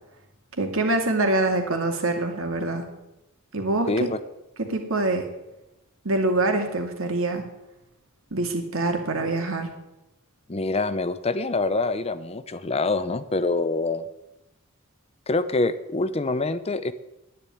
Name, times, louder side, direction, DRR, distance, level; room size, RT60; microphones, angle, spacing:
voice 1, 0.6-2.9 3.5-4.1 4.6-5.3 6.0-7.4 8.3-9.7, right 2 dB, 75° right, 4 dB, 2.5 m, -25 dB
voice 2, 3.9-4.2 10.5-14.0 15.3-16.9, left 3 dB, 30° left, 13 dB, 0.6 m, -25 dB
10.5 x 10.0 x 9.2 m, 0.93 s
head